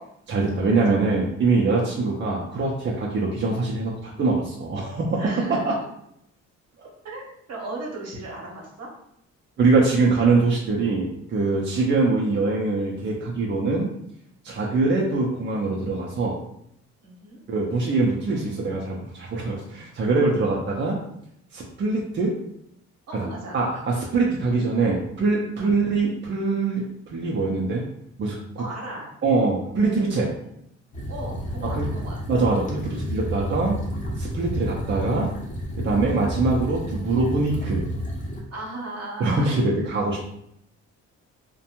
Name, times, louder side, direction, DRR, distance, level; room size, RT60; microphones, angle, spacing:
voice 1, 0.3-5.2 5.5-5.7 6.8-6.9 9.6-13.9 14.4-16.4 17.5-21.0 21.5-22.3 23.1-23.2 23.5-27.8 28.2-28.4 29.2-30.3 31.7-31.9 32.3-33.8 34.2-35.3 35.8-37.9 39.2-40.2, right 3 dB, 40° right, -3 dB, 0.5 m, -23 dB
voice 2, 5.2-5.8 7.0-8.9 17.0-17.4 20.4-20.5 23.1-23.6 25.6-25.7 28.6-29.1 31.1-32.2 35.9-36.2 38.5-39.6, right 2 dB, 60° right, -1 dB, 0.9 m, -37 dB
sound 1, 30.9-38.4, equal, 25° left, 0.7 m, -30 dB
2.5 x 2.2 x 2.9 m, 0.74 s
cardioid pair, 90°, 30 cm